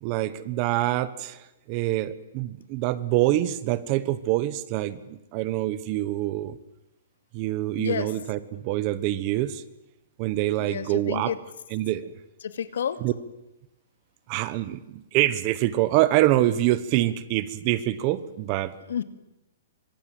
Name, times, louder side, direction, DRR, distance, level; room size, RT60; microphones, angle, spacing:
voice 1, 0.0-1.4 1.7-6.6 7.3-9.6 10.2-11.3 11.7-12.1 13.0-13.1 14.3-18.8, right 15 dB, 25° right, 16 dB, 1.0 m, -25 dB
voice 2, 7.8-8.1 10.6-11.4 12.4-13.0 18.9-19.0, left 8 dB, 70° left, 11 dB, 2.4 m, -30 dB
30.0 x 25.5 x 7.8 m, 0.92 s
hypercardioid pair, 180°, 0 cm